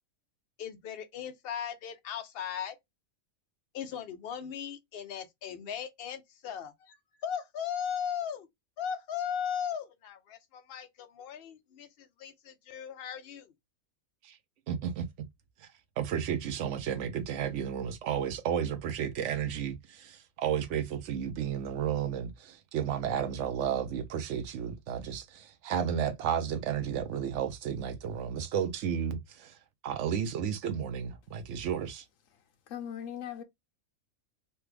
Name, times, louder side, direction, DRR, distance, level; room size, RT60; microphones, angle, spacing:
voice 1, 0.6-2.8 3.7-8.5 8.8-13.5, left 8 dB, 55° left, 0.7 m, -37 dB
voice 2, 14.7-15.1 15.6-15.7 16.0-29.6 29.8-32.0, right 8 dB, 65° right, 0.9 m, -32 dB
voice 3, 32.3-33.4, left 9 dB, 70° left, 1.1 m, -40 dB
3.3 x 2.2 x 3.2 m
omnidirectional pair, 1.4 m